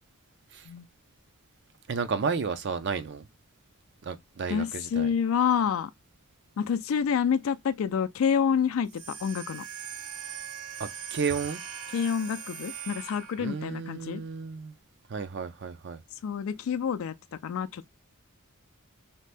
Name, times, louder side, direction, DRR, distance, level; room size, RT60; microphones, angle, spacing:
voice 1, 1.9-3.3 4.0-5.1 10.8-11.6 13.4-14.7 15.1-16.0, right 5 dB, 55° right, 0.5 m, -32 dB
voice 2, 4.5-5.9 6.6-9.6 11.9-14.2 16.2-17.1 17.4-17.9, left 7 dB, 70° left, 0.3 m, -28 dB
sound 1, 8.8-13.6, right 8 dB, 75° right, 1.0 m, -40 dB
2.8 x 2.6 x 3.3 m
head